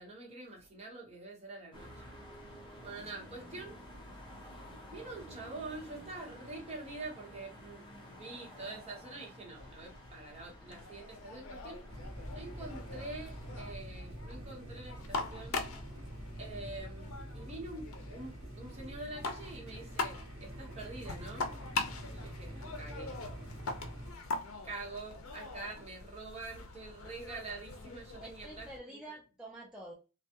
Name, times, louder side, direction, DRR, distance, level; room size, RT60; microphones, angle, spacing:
voice 1, 0.0-2.1 2.8-3.8 4.9-11.8 12.3-15.7 16.4-17.8 18.1-21.5 22.1-23.2 24.6-28.7, right 2 dB, 30° right, 1.0 m, -46 dB
sound 1, 1.7-13.7, equal, 25° left, 0.8 m, -52 dB
sound 2, 9.5-28.8, left 3 dB, 75° left, 0.6 m, -43 dB
sound 3, 11.9-24.1, right 1 dB, 60° right, 0.7 m, -46 dB
voice 2, 28.2-29.9, right 1 dB, 5° right, 0.5 m, -48 dB
3.3 x 2.2 x 2.8 m
head